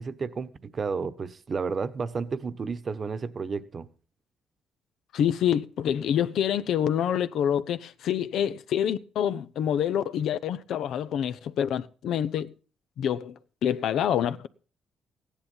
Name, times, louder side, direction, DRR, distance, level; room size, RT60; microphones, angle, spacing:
voice 1, 0.0-3.9, right 5 dB, 40° right, 1.1 m, -32 dB
voice 2, 5.1-12.5 13.0-13.3 13.6-14.5, left 9 dB, 75° left, 0.8 m, -27 dB
15.5 x 10.5 x 5.5 m
cardioid pair, 90°, 0 cm